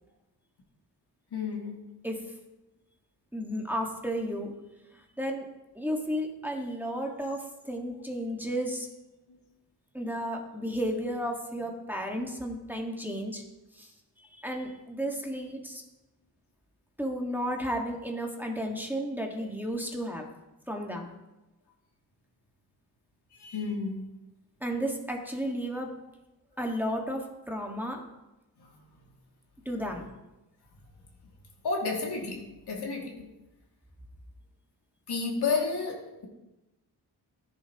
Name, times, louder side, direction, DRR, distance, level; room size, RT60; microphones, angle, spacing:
voice 1, 1.3-2.0 9.3-9.4 23.3-24.2 28.6-28.7 31.6-33.3 35.1-36.3, left 4 dB, 70° left, -2 dB, 2.6 m, -32 dB
voice 2, 3.3-4.5 5.2-5.5 5.7-8.9 9.9-13.4 13.8-13.9 14.4-15.8 17.0-20.2 20.7-21.1 24.6-26.0 26.6-28.0 29.6-30.1, equal, 5° right, 0 dB, 1.7 m, -33 dB
13.5 x 10.5 x 3.0 m, 0.99 s
cardioid pair, 75°, 41 cm